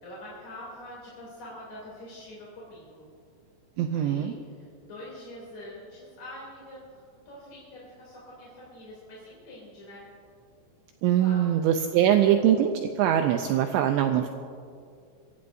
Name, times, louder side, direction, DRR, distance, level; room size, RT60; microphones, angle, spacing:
voice 1, 0.0-3.1 3.9-6.8 7.3-10.1 11.2-11.6 11.9-12.3 13.6-13.7, left 1 dB, 40° left, -6 dB, 3.5 m, -45 dB
voice 2, 3.8-4.3 11.0-14.3, right 10 dB, 85° right, 6 dB, 2.6 m, -23 dB
23.5 x 15.5 x 2.6 m, 2.3 s
omnidirectional pair, 5.8 m